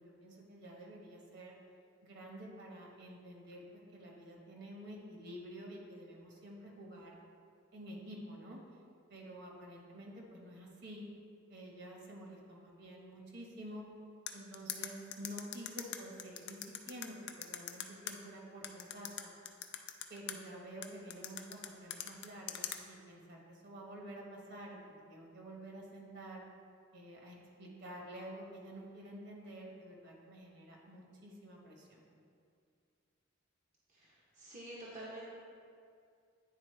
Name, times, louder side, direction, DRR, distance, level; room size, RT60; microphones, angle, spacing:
voice 1, 0.0-1.5 2.0-3.6 3.9-7.1 7.7-8.6 9.1-11.1 11.5-13.9 14.3-19.3 20.1-26.4 26.9-32.0, right 1 dB, 60° right, -2 dB, 1.3 m, -49 dB
sound 1, 14.3-18.1 18.6-20.3 20.8-22.8, left 10 dB, 60° left, 0.5 m, -41 dB
voice 2, 33.9-35.2, right 1 dB, 40° right, -6 dB, 0.8 m, -48 dB
9.8 x 4.2 x 3.3 m, 2.3 s
head